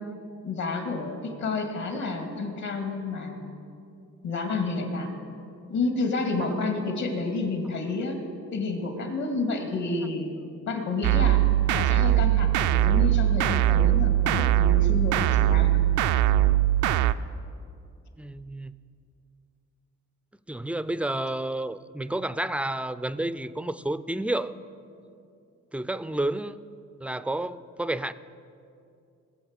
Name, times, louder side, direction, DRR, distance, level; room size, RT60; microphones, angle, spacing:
voice 1, 0.4-3.5 4.2-5.1 5.7-8.2 8.5-10.3 10.7-11.4 11.7-15.8, left 3 dB, 70° left, 2.2 m, -30 dB
sound 1, 11.0-17.1, right 13 dB, 80° right, 0.4 m, -21 dB
voice 2, 18.2-18.8 20.5-24.5 25.7-26.6 27.0-28.1, right 1 dB, 5° right, 0.3 m, -30 dB
19.0 x 7.3 x 6.5 m
cardioid pair, 90°, 30 cm